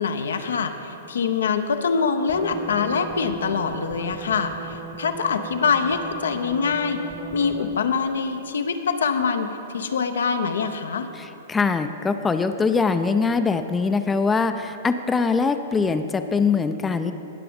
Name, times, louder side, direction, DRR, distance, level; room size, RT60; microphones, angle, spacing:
voice 1, 0.0-7.0 7.3-9.5 9.7-11.1, left 5 dB, 75° left, 7 dB, 0.7 m, -24 dB
sound 1, 2.3-8.0, right 4 dB, 25° right, 1.2 m, -38 dB
voice 2, 11.2-17.1, left 4 dB, 15° left, 8 dB, 0.5 m, -22 dB
19.5 x 6.7 x 3.6 m, 3.0 s
hypercardioid pair, 115°, 0 cm